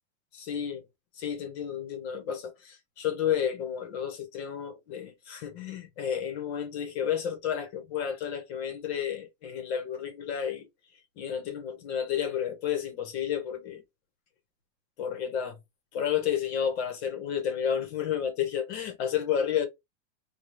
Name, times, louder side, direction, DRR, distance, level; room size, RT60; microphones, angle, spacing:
voice 1, 0.3-0.8 1.2-10.7 11.2-13.8 15.0-15.6 15.9-19.7, left 8 dB, 55° left, 1.2 m, -31 dB
2.7 x 2.4 x 3.1 m
supercardioid pair, 150°, 39 cm